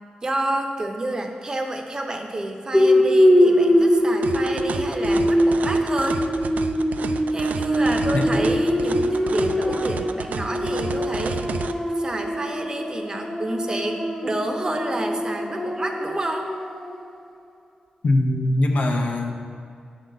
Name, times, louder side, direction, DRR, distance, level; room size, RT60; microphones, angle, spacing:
voice 1, 0.2-6.2 7.0-11.7 12.0-16.5, right 1 dB, 30° right, 3 dB, 0.7 m, -29 dB
sound 1, 2.7-16.9, equal, 10° left, 0.9 m, -22 dB
sound 2, 4.2-11.7, right 5 dB, 90° right, 0.3 m, -32 dB
voice 2, 18.0-19.3, left 1 dB, 70° left, 2 dB, 0.8 m, -21 dB
8.8 x 3.9 x 6.5 m, 2.4 s
wide cardioid pair, 145°, 3 cm